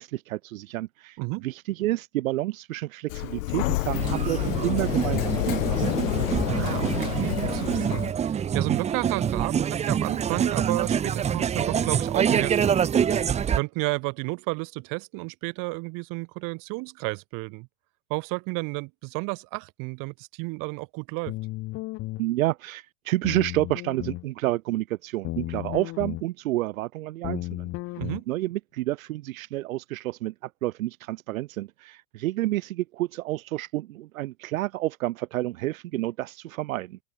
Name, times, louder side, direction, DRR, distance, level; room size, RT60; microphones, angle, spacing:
voice 1, 0.0-1.2 1.4-5.9 22.2-27.7 28.3-37.0, right 16 dB, 80° right, 1.4 m, -29 dB
voice 2, 1.2-1.5 6.4-13.0 13.5-17.7 18.1-21.3 28.0-28.3, right 31 dB, 55° right, 4.5 m, -32 dB
Sliding door, 3.1-8.1, left 18 dB, 70° left, 3.8 m, -28 dB
sound 1, 3.9-13.6, right 8 dB, 15° right, 0.8 m, -26 dB
sound 2, 21.3-22.2 23.2-24.3 25.2-26.2 27.2-28.2, left 19 dB, 35° left, 0.8 m, -34 dB
supercardioid pair, 135°, 40 cm